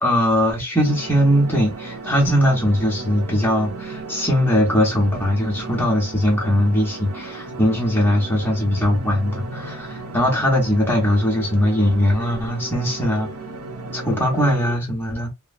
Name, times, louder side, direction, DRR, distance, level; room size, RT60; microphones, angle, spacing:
voice 1, 0.0-13.3 13.9-15.3, equal, 10° left, 1.0 m, -20 dB
sound 1, 0.8-14.7, right 3 dB, 90° right, 0.7 m, -34 dB
2.9 x 2.1 x 2.4 m
head